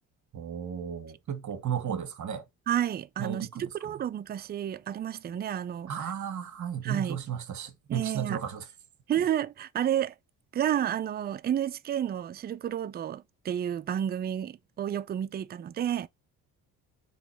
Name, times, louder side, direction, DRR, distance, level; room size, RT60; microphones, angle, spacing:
voice 1, 0.3-2.4 3.2-3.7 5.9-8.6, right 8 dB, 50° right, 1.1 m, -34 dB
voice 2, 2.7-6.1 6.8-7.2 7.9-8.4 9.1-10.1 10.5-16.1, right 10 dB, 25° right, 0.3 m, -31 dB
3.7 x 3.1 x 4.4 m
supercardioid pair, 75°, 38 cm